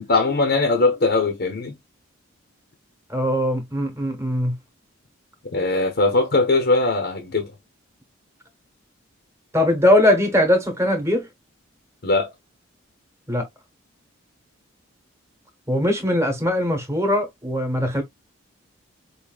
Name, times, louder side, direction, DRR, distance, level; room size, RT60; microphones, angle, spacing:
voice 1, 0.0-1.8 5.5-7.5 12.0-12.3, left 3 dB, 50° left, 0.8 m, -20 dB
voice 2, 3.1-4.6 9.5-11.3 13.3-13.5 15.7-18.0, left 1 dB, 15° right, 1.1 m, -20 dB
4.8 x 2.6 x 2.4 m
head